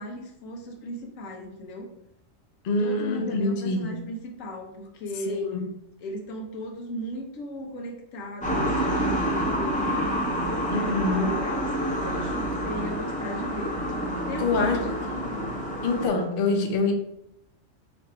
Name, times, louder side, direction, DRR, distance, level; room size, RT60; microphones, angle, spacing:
voice 1, 0.0-1.9 2.8-5.4 6.0-10.0 10.7-13.8 14.3-15.0, equal, 85° left, 1 dB, 1.2 m, -37 dB
voice 2, 2.6-4.0 5.3-5.7 10.7-11.4 14.4-14.9 15.2-15.4 15.8-16.9, left 3 dB, 55° left, 4 dB, 0.7 m, -26 dB
sound 1, 8.4-16.1, equal, 10° left, 0.7 m, -28 dB
3.2 x 2.5 x 4.3 m, 0.79 s
omnidirectional pair, 1.3 m